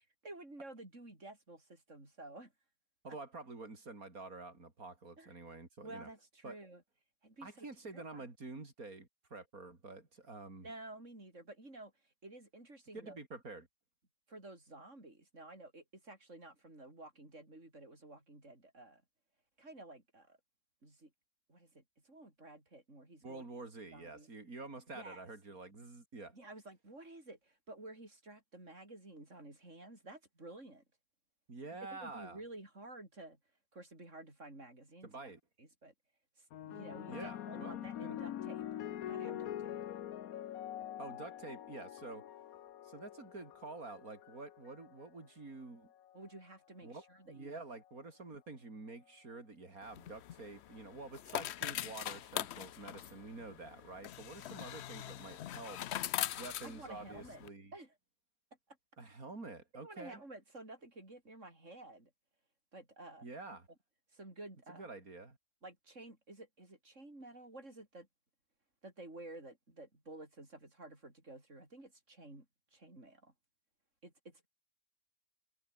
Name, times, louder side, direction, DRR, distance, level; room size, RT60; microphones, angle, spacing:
voice 1, 0.2-2.5 3.1-3.2 5.2-5.3 5.8-6.8 7.2-7.7 7.9-8.2 10.6-13.2 14.3-19.0 19.6-20.4 20.8-21.1 21.5-23.4 23.8-24.3 24.9-25.2 26.3-30.8 31.9-33.4 33.7-35.3 35.6-35.9 36.4-38.6 39.1-39.8 46.1-47.6 56.6-57.4 57.7-57.9 59.8-62.1 62.7-63.3 64.1-64.9 65.6-68.1 68.8-72.5 72.7-73.3 74.0-74.5, right 2 dB, 55° right, 7.1 m, -52 dB
voice 2, 3.0-6.1 6.4-6.6 7.4-10.7 12.9-13.7 23.2-26.3 31.5-32.4 35.0-35.4 37.1-38.2 41.0-42.3 42.8-45.9 46.8-55.8 56.4-57.7 59.0-60.2 63.2-63.7 64.7-65.4, right 3 dB, 80° right, 4.5 m, -48 dB
sound 1, 36.5-45.1 46.0-46.4, left 11 dB, 80° left, 1.3 m, -44 dB
sound 2, 49.8-57.5, left 12 dB, 60° left, 0.8 m, -42 dB
omnidirectional pair, 1.5 m